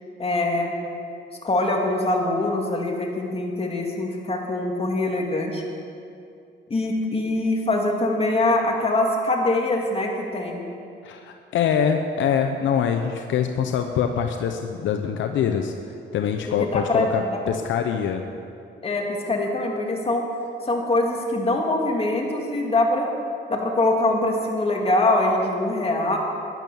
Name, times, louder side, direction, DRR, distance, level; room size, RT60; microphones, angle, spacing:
voice 1, 0.2-0.8 1.4-5.6 6.7-10.6 16.6-17.4 18.8-20.3 20.6-23.1 23.5-26.2, left 2 dB, 30° left, 0 dB, 2.5 m, -23 dB
voice 2, 11.0-15.7 16.1-18.2, left 7 dB, 75° left, 5 dB, 0.8 m, -24 dB
12.0 x 11.0 x 7.1 m, 2.5 s
cardioid pair, 90°, 20 cm